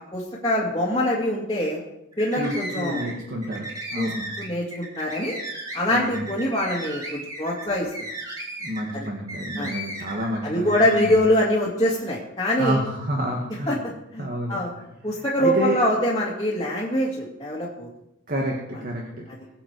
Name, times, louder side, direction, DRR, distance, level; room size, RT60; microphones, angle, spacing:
voice 1, 0.1-1.8 2.2-3.0 4.0-4.1 4.4-5.4 5.7-7.9 8.9-9.1 9.6-9.7 10.4-12.8 13.7-13.8 14.1-14.7 15.0-17.9, left 1 dB, 20° left, -6 dB, 2.3 m, -24 dB
sound 1, 2.1-3.1 3.4-10.4 10.7-11.2, right 1 dB, 15° right, 3.1 m, -35 dB
voice 2, 2.3-4.3 5.9-6.3 8.6-11.1 12.6-13.8 14.2-14.9 15.1-15.8 18.3-19.3, right 1 dB, 40° right, 0 dB, 1.9 m, -29 dB
21.0 x 7.9 x 4.8 m, 0.88 s
head